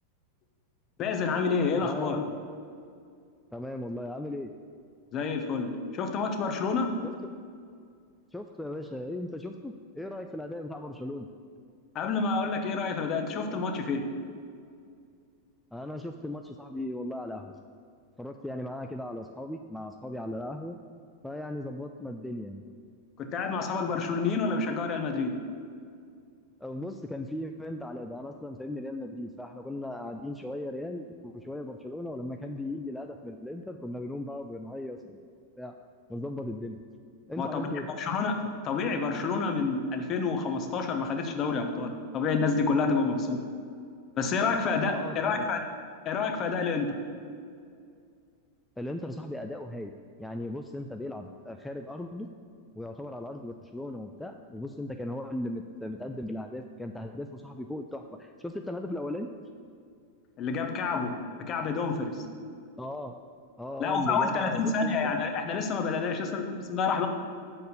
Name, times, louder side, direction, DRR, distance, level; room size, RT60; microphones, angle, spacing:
voice 1, 1.0-2.2 5.1-6.9 11.9-14.0 23.2-25.3 37.4-37.7 38.0-38.4 38.6-43.4 44.2-45.6 46.0-47.0 60.4-61.1 61.4-62.2 63.8-67.1, left 4 dB, 30° left, 5 dB, 0.8 m, -28 dB
voice 2, 1.8-2.4 3.5-4.5 8.3-11.3 15.7-17.6 18.2-20.8 21.2-22.6 26.6-35.2 35.6-35.8 36.1-36.8 37.3-37.9 44.9-45.5 48.8-49.9 50.2-52.3 52.7-59.3 62.8-63.2 63.6-65.1, left 1 dB, 5° left, 4 dB, 0.3 m, -37 dB
6.5 x 4.3 x 6.6 m, 2.3 s
figure-of-eight pair, 90°, 0 cm